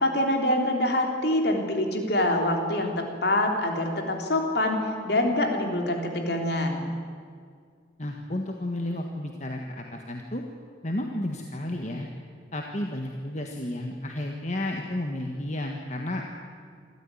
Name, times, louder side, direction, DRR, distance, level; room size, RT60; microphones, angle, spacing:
voice 1, 0.0-6.9, left 1 dB, 55° left, 3 dB, 3.5 m, -25 dB
voice 2, 8.0-10.4 10.8-12.1 12.5-16.2, left 1 dB, 40° left, 2 dB, 1.6 m, -32 dB
26.0 x 14.0 x 9.9 m, 2.1 s
head